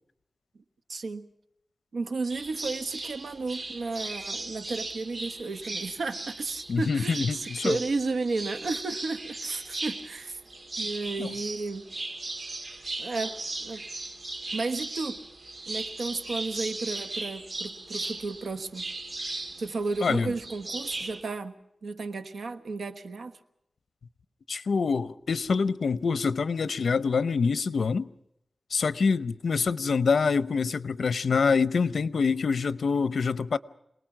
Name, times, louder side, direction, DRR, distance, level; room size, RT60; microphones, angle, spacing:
voice 1, 0.9-1.3 1.9-10.4 10.8-11.9 13.0-13.8 14.5-15.2 15.7-18.8 19.6-21.5 21.8-23.4, right 3 dB, 90° right, 1.3 m, -33 dB
sound 1, 2.3-21.2, right 2 dB, 50° right, 2.0 m, -37 dB
voice 2, 6.7-7.8 11.2-11.3 20.0-20.3 24.5-28.1 28.7-33.6, left 5 dB, 90° left, 0.7 m, -26 dB
27.0 x 19.5 x 6.1 m
wide cardioid pair, 90°, 0 cm